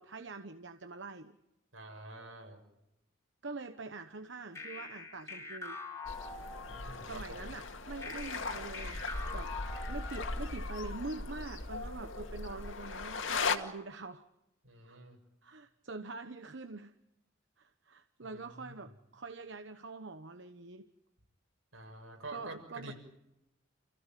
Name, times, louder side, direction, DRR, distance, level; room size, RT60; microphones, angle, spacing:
voice 1, 0.0-1.4 3.4-5.8 7.0-9.0 9.3-9.5 9.9-14.2 14.8-15.0 15.4-16.9 17.6-20.9 22.3-22.9, right 3 dB, 60° right, 9 dB, 1.0 m, -44 dB
voice 2, 1.7-2.6 6.7-7.4 14.6-15.2 18.2-18.8 21.7-22.9, right 2 dB, 85° right, 3 dB, 7.2 m, -48 dB
sound 1, 4.6-7.1 8.0-10.5, left 3 dB, 15° left, 4.0 m, -44 dB
sound 2, 6.0-13.6, left 4 dB, 70° left, 2.1 m, -38 dB
29.5 x 16.0 x 9.2 m, 0.90 s
head